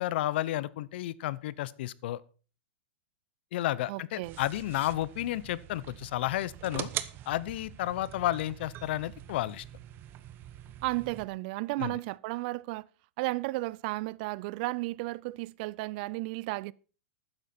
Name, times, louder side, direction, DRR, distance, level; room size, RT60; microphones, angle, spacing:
voice 1, 0.0-2.2 3.5-6.9 7.3-9.6 11.8-12.0, left 14 dB, 65° left, 0.7 m, -32 dB
voice 2, 3.9-4.4 10.8-12.9 13.2-16.7, right 21 dB, 50° right, 0.4 m, -33 dB
sound 1, 4.2-11.2, right 13 dB, 35° right, 0.9 m, -43 dB
12.5 x 9.6 x 4.3 m
hypercardioid pair, 130°, 6 cm